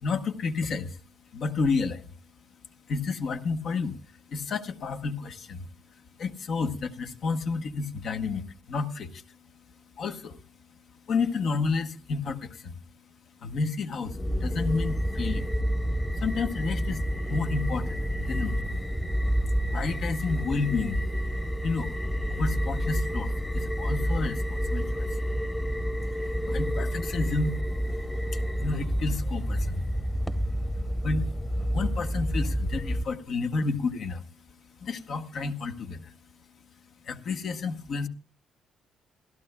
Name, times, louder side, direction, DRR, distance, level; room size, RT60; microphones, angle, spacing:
voice 1, 0.0-1.0 1.3-2.1 2.9-5.7 6.2-9.4 10.0-10.4 11.1-12.8 13.4-15.5 16.1-18.8 19.7-21.0 21.6-22.0 22.3-25.2 26.2-27.6 28.6-29.8 31.0-31.3 31.7-34.3 34.8-36.1 37.0-38.1, left 4 dB, 65° left, 5 dB, 1.2 m, -31 dB
sound 1, 14.1-33.0, equal, 10° left, 1.0 m, -29 dB
27.0 x 12.0 x 2.2 m, 0.38 s
cardioid pair, 90°, 0 cm